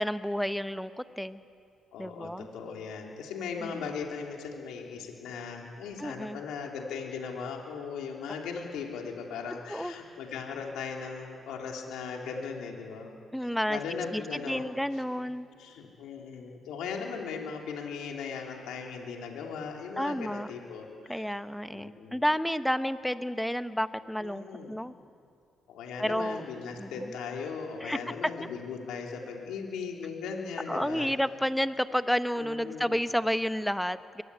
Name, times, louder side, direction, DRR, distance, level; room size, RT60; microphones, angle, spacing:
voice 1, 0.0-1.4 2.0-2.5 3.6-3.7 6.0-6.4 9.7-9.9 13.3-13.8 14.1-15.5 20.0-20.5 21.1-24.9 26.0-26.4 26.8-27.1 27.8-28.0 30.7-34.2, equal, ahead, 11 dB, 0.9 m, -31 dB
voice 2, 1.9-13.1 13.7-14.6 15.6-21.3 21.7-22.2 24.2-24.7 25.7-31.1 32.4-32.9, left 5 dB, 90° left, 1 dB, 3.4 m, -38 dB
23.0 x 18.5 x 9.9 m, 2.3 s
cardioid pair, 90°, 0 cm